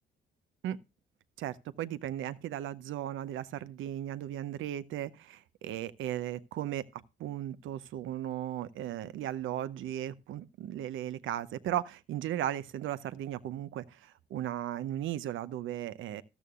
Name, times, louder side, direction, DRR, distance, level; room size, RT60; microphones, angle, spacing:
voice 1, 1.4-16.2, right 12 dB, 80° right, 0.7 m, -36 dB
13.5 x 12.5 x 2.4 m
cardioid pair, 90°, 20 cm